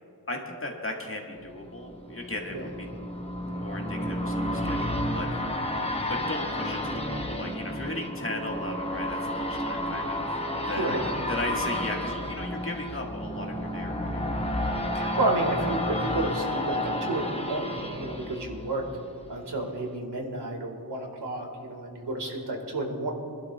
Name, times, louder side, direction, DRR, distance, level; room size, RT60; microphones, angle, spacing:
voice 1, 0.3-2.9 3.5-5.5 6.1-14.2, left 1 dB, 30° left, 0 dB, 1.8 m, -36 dB
sound 1, 1.5-19.3 19.7-19.8, left 1 dB, 15° left, 1.0 m, -31 dB
voice 2, 14.9-18.8 19.3-23.1, right 2 dB, 80° right, 1 dB, 2.0 m, -31 dB
25.0 x 11.5 x 2.4 m, 2.6 s
wide cardioid pair, 85°, 40 cm